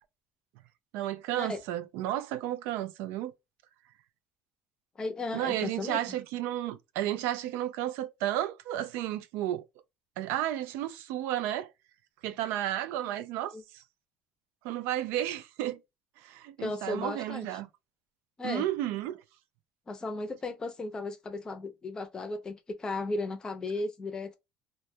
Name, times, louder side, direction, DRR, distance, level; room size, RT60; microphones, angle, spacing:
voice 1, 0.9-3.3 5.3-9.6 10.2-11.7 12.2-13.8 14.6-15.8 16.2-17.7 18.4-19.2, right 13 dB, 80° right, 0.4 m, -32 dB
voice 2, 5.0-6.2 13.5-13.6 16.6-17.5 18.4-18.7 19.9-24.4, left 2 dB, 20° left, 0.5 m, -35 dB
2.2 x 2.1 x 2.7 m
cardioid pair, 150°, 4 cm